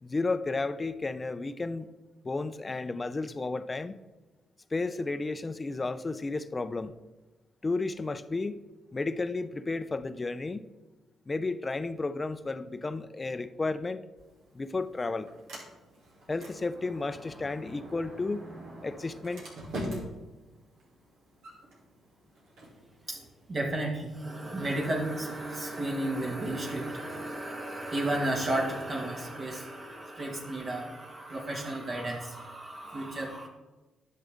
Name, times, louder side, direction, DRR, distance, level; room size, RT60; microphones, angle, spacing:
voice 1, 0.0-1.9 2.2-4.0 4.7-7.0 7.6-8.6 8.9-10.7 11.3-14.0 14.5-15.3 16.3-18.5 18.8-19.4, left 3 dB, 30° left, 13 dB, 0.5 m, -32 dB
Sliding door, 14.2-24.2, equal, 80° right, 2.4 m, -45 dB
voice 2, 23.1-33.5, right 1 dB, 45° right, -1 dB, 1.8 m, -33 dB
10.5 x 6.6 x 3.5 m, 1.2 s
supercardioid pair, 65°, 0 cm